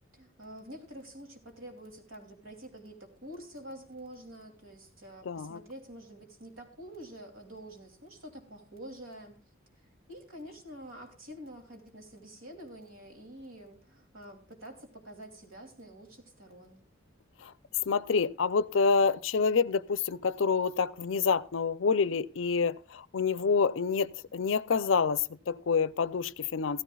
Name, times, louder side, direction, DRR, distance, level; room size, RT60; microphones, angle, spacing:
voice 1, 0.1-9.4 10.1-16.8, right 1 dB, 85° right, 2.8 m, -47 dB
voice 2, 5.2-5.6 17.4-17.5 17.9-26.8, left 5 dB, 65° left, 0.5 m, -27 dB
15.5 x 14.5 x 2.3 m
head